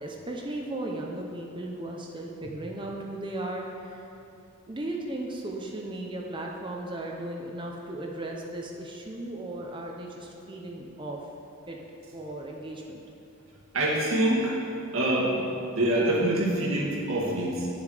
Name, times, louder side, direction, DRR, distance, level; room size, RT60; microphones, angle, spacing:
voice 1, 0.0-4.0 4.7-11.2 11.7-11.8 12.1-13.0, right 1 dB, 20° right, 0 dB, 0.7 m, -36 dB
voice 2, 13.7-14.6 14.9-15.5 15.7-17.7, right 1 dB, 65° right, -5 dB, 2.0 m, -25 dB
10.5 x 7.1 x 5.0 m, 2.8 s
head